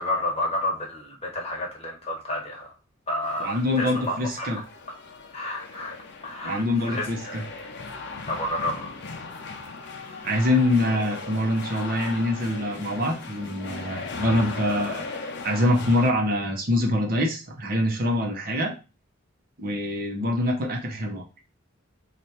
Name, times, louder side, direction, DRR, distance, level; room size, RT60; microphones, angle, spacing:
voice 1, 0.0-2.7 3.1-4.5 5.3-6.0 6.2-7.5 8.3-9.0 9.8-10.3, left 1 dB, 30° left, 1.1 m, -31 dB
sound 1, 3.2-16.1, left 4 dB, 55° left, 0.6 m, -38 dB
voice 2, 3.4-4.6 6.4-7.4 10.2-15.0 15.4-18.7 19.6-21.2, left 1 dB, 45° right, 0.8 m, -24 dB
3.2 x 2.5 x 4.2 m
head